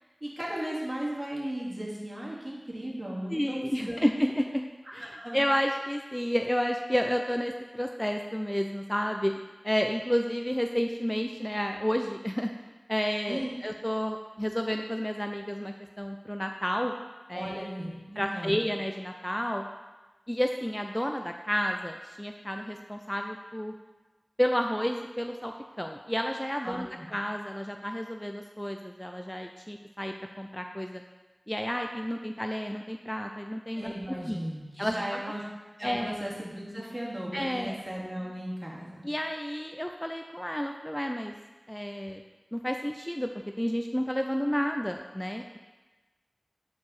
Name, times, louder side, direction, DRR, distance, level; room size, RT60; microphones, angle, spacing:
voice 1, 0.2-4.0 5.0-5.4 13.3-13.5 17.3-18.6 26.6-27.0 33.7-35.4 35.8-39.0, right 1 dB, 40° right, -5 dB, 2.4 m, -36 dB
voice 2, 3.3-4.6 4.9-9.3 9.6-12.5 12.9-17.0 17.3-17.7 18.2-19.6 20.3-23.7 24.4-31.0 31.5-33.9 34.3-34.4 34.8-35.2 35.8-36.1 37.3-37.8 39.0-41.3 41.7-42.2 42.5-43.3 43.6-45.6, equal, 10° left, 4 dB, 0.5 m, -31 dB
11.0 x 4.8 x 4.1 m, 1.2 s
wide cardioid pair, 40°, 0 cm